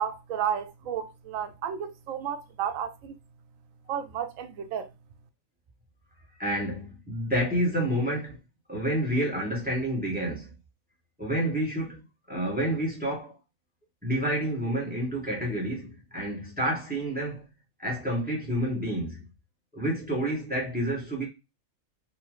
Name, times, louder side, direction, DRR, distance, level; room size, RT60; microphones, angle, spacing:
voice 1, 0.0-3.2 3.9-4.9, right 8 dB, 75° right, 1.0 m, -32 dB
voice 2, 6.4-8.4 8.7-10.5 11.2-12.0 12.3-13.3 14.0-17.4 17.8-19.2 19.7-21.2, right 1 dB, 5° right, 1.3 m, -29 dB
3.9 x 2.6 x 3.1 m
omnidirectional pair, 1.4 m